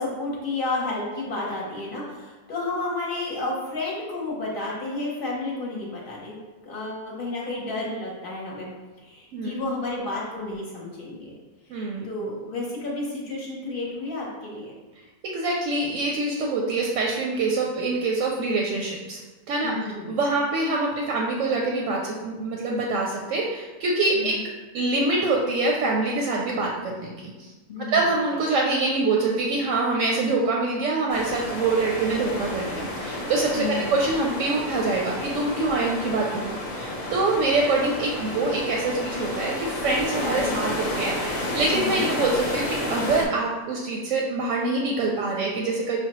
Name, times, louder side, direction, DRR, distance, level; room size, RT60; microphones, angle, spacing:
voice 1, 0.0-6.4 6.6-8.7 9.0-11.3 12.0-14.7 19.6-20.1 24.1-24.4 27.7-28.1 33.6-34.0 40.2-40.6 41.7-42.1, left 2 dB, 45° left, -3 dB, 0.8 m, -31 dB
voice 2, 11.7-12.1 15.2-19.2 19.5-19.7 20.1-24.3 24.7-27.5 27.9-46.0, right 3 dB, 70° right, -1 dB, 0.8 m, -25 dB
sound 1, 31.1-43.3, left 1 dB, 65° left, 0.3 m, -31 dB
5.8 x 2.1 x 2.9 m, 1.2 s
omnidirectional pair, 1.6 m